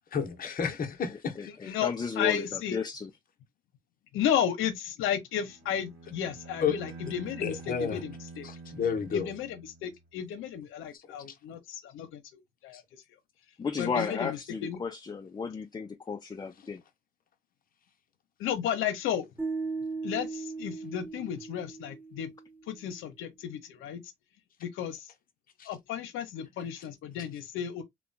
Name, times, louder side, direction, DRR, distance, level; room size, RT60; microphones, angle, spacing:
voice 1, 0.1-1.8 6.6-6.7 7.4-8.0 8.4-9.3 25.6-25.7, left 6 dB, 45° left, 0.7 m, -31 dB
voice 2, 1.1-3.1 13.6-16.8, left 5 dB, 20° left, 0.4 m, -34 dB
voice 3, 2.2-2.8 4.1-8.5 9.1-13.0 13.8-14.8 18.4-19.3 20.0-22.3 22.7-24.0 24.6-25.1 25.7-27.8, left 9 dB, 90° left, 0.7 m, -33 dB
Bowed string instrument, 5.4-10.2, right 3 dB, 85° right, 1.1 m, -47 dB
sound 1, 19.4-22.6, right 4 dB, 10° right, 0.9 m, -37 dB
3.0 x 2.1 x 2.5 m
cardioid pair, 90°, 20 cm